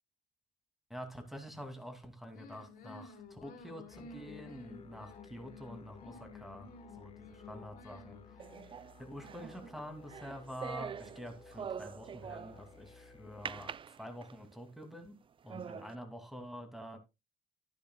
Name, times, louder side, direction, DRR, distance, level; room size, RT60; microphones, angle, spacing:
voice 1, 0.9-8.5 9.0-17.0, equal, ahead, 2.5 m, -47 dB
sound 1, 2.3-8.7, left 4 dB, 60° left, 3.0 m, -53 dB
sound 2, 3.9-13.8, left 5 dB, 35° left, 1.1 m, -57 dB
sound 3, 8.4-12.8 13.5-14.6 15.1-15.2 15.5-16.0, right 7 dB, 30° right, 0.4 m, -45 dB
12.5 x 10.0 x 2.3 m
cardioid pair, 110°, 17 cm